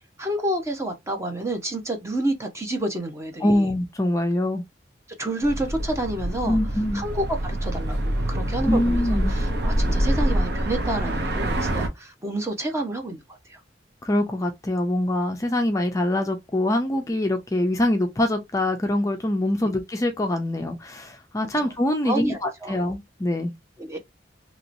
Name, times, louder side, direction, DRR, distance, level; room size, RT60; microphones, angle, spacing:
voice 1, 0.2-3.7 5.2-6.6 6.9-13.6 21.6-21.7 22.0-22.8 23.8-24.0, right 1 dB, 15° right, 0.8 m, -29 dB
voice 2, 3.4-4.6 6.4-7.0 8.7-9.4 14.0-23.5, left 1 dB, 20° left, 0.4 m, -24 dB
sound 1, 5.4-11.9, right 1 dB, 65° right, 0.8 m, -25 dB
3.0 x 2.9 x 2.5 m
head